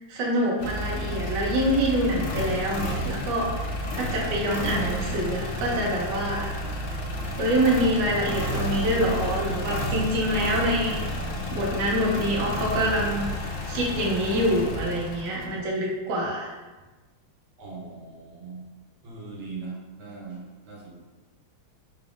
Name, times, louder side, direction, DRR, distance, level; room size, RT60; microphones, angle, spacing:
voice 1, 0.1-3.5 3.9-6.5 7.4-13.3 13.7-16.5, equal, 65° right, -3 dB, 1.3 m, -26 dB
sound 1, 0.6-15.7, equal, 80° left, 1.4 m, -31 dB
voice 2, 17.6-18.6 19.0-21.0, right 4 dB, 90° right, -3 dB, 1.7 m, -40 dB
4.0 x 3.4 x 2.4 m, 1.2 s
omnidirectional pair, 2.3 m